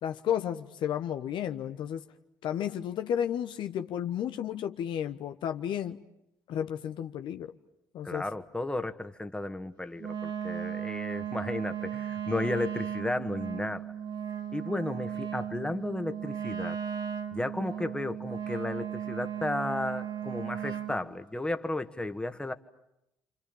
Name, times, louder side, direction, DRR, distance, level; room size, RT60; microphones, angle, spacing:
voice 1, 0.0-2.0 2.4-6.0 6.5-7.5 7.9-8.2, left 9 dB, 60° left, 7 dB, 1.1 m, -32 dB
voice 2, 8.0-13.9 14.5-16.8 17.3-22.5, left 2 dB, 10° left, 8 dB, 1.9 m, -34 dB
Wind instrument woodwind instrument, 10.0-21.0, right 9 dB, 50° right, 2.2 m, -36 dB
30.0 x 27.0 x 7.2 m, 0.83 s
hypercardioid pair, 55°, 9 cm